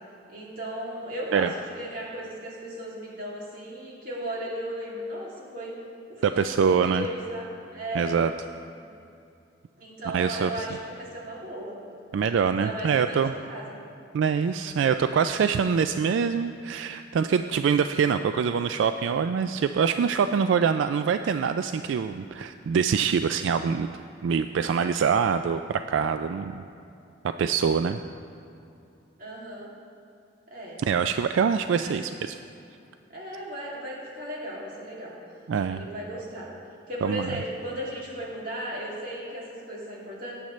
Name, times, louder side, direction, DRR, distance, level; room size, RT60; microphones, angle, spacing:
voice 1, 0.3-5.7 6.1-8.2 9.8-11.8 12.5-13.8 29.2-29.7 30.5-30.8 31.7-32.0 33.1-35.2 35.7-36.5 36.9-40.3, equal, 50° right, -5 dB, 2.5 m, -36 dB
voice 2, 6.2-7.1 7.9-8.3 10.1-10.7 12.1-13.3 14.1-26.6 27.4-28.0 30.8-32.3 35.5-35.8 37.0-37.4, right 6 dB, 85° right, 9 dB, 0.3 m, -24 dB
18.0 x 8.6 x 3.1 m, 2.7 s
head